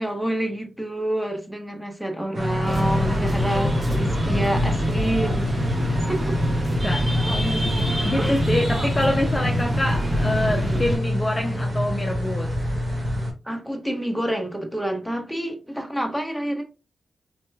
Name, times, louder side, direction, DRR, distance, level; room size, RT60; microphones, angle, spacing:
voice 1, 0.0-5.6 6.1-6.4 8.2-8.4 10.5-10.9 13.4-16.6, right 1 dB, 5° right, 0.9 m, -28 dB
sound 1, 2.3-13.3, left 1 dB, 55° right, 1.0 m, -27 dB
sound 2, 2.6-11.0, equal, 30° right, 1.2 m, -26 dB
voice 2, 6.8-7.7 8.0-12.5, left 1 dB, 20° left, 0.5 m, -26 dB
3.3 x 2.8 x 2.2 m
cardioid pair, 50°, 0 cm